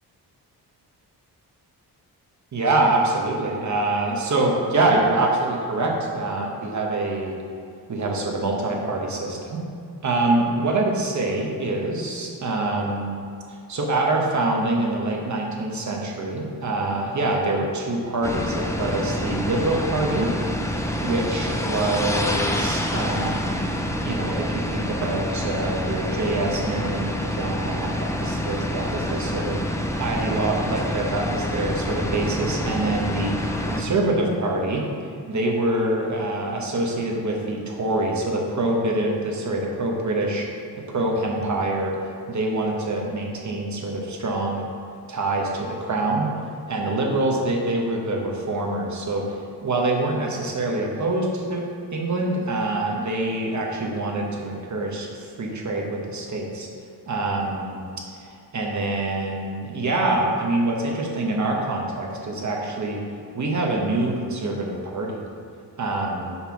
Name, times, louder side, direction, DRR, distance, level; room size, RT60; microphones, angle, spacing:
voice 1, 2.5-7.3 7.9-9.6 10.0-13.2 13.7-20.3 21.0-29.6 30.0-34.8 35.3-40.5 40.9-41.9 42.3-44.7 45.1-46.3 46.7-51.6 51.9-56.7 57.1-57.8 58.2-63.0 63.3-65.2 65.8-66.4, right 2 dB, 45° right, -1 dB, 1.0 m, -25 dB
sound 1, 18.2-33.8, left 1 dB, 10° left, 0.4 m, -27 dB
5.5 x 4.4 x 5.7 m, 2.4 s
wide cardioid pair, 155°, 40 cm